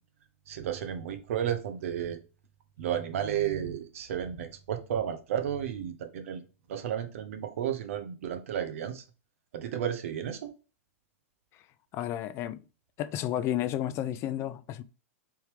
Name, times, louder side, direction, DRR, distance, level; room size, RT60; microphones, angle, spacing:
voice 1, 0.5-2.2 2.8-6.4 6.7-9.0 9.5-10.5, right 9 dB, 70° right, 0.9 m, -32 dB
voice 2, 11.9-12.6 13.0-14.8, left 12 dB, 35° left, 0.4 m, -32 dB
4.2 x 3.5 x 3.2 m
hypercardioid pair, 115°, 8 cm